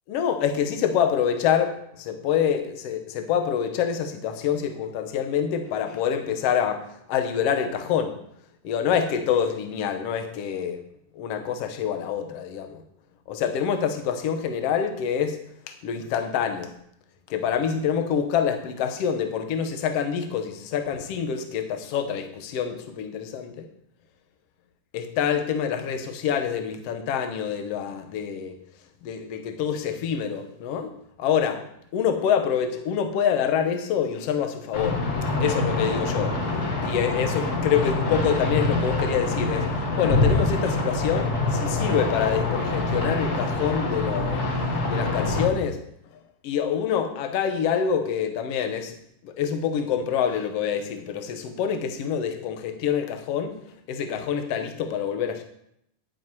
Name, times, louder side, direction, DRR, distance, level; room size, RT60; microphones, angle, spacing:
voice 1, 0.1-8.2 8.6-10.8 11.1-12.8 13.3-15.4 15.7-16.7 17.3-23.7 24.9-28.6 29.0-31.7 31.9-35.0 35.4-36.4 36.8-44.4 44.9-45.8 46.4-49.0 49.2-53.6 53.9-55.4, left 8 dB, 70° left, 7 dB, 1.4 m, -26 dB
sound 1, 34.7-45.5, left 2 dB, 45° left, 1.2 m, -25 dB
10.0 x 9.2 x 4.7 m, 0.72 s
omnidirectional pair, 4.3 m